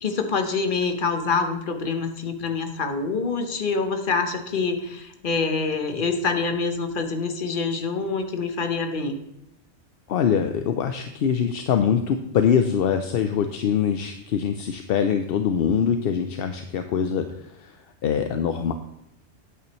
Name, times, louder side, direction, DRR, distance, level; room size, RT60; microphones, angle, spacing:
voice 1, 0.0-9.2, left 4 dB, 45° left, 6 dB, 1.0 m, -26 dB
voice 2, 10.1-17.8 18.0-18.7, left 7 dB, 60° left, 7 dB, 0.7 m, -23 dB
9.5 x 8.5 x 3.0 m, 0.82 s
omnidirectional pair, 1.3 m